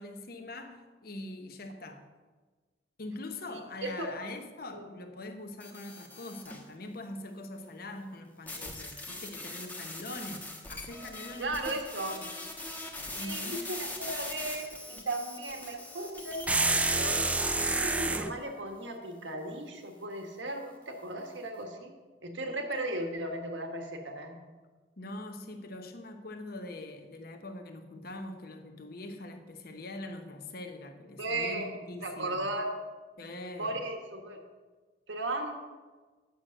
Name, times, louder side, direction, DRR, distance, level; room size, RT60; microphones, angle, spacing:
voice 1, 0.0-2.1 3.0-11.8 13.2-13.7 25.0-32.4 33.2-33.8, left 2 dB, 55° left, 0.9 m, -43 dB
voice 2, 3.5-4.3 4.7-4.8 11.4-12.2 13.1-17.3 17.7-21.9 22.2-24.4 31.2-31.7 32.0-32.7 33.6-34.4 35.1-35.5, right 2 dB, 85° right, 1.4 m, -36 dB
sound 1, 5.6-6.7 8.5-17.6, left 2 dB, 10° left, 1.1 m, -42 dB
sound 2, 16.5-18.3, right 2 dB, 10° right, 0.3 m, -27 dB
8.3 x 6.3 x 6.3 m
head